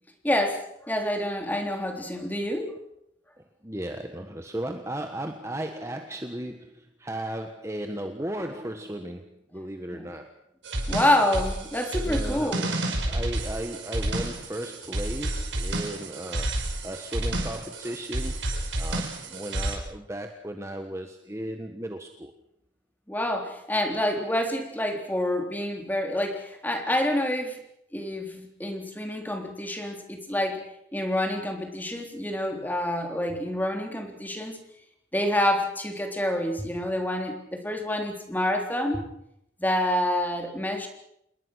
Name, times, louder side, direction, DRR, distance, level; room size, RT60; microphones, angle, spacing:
voice 1, 0.2-2.8 9.9-10.1 10.9-12.6 23.1-27.6 27.9-30.6 30.9-34.6 35.1-39.0 39.6-40.9, left 1 dB, 10° left, 3 dB, 3.6 m, -27 dB
voice 2, 3.6-10.3 12.0-18.5 18.8-22.3, right 1 dB, 15° right, 5 dB, 1.4 m, -36 dB
sound 1, 10.6-19.8, right 1 dB, 65° right, 5.5 m, -30 dB
28.0 x 21.0 x 6.4 m, 0.76 s
head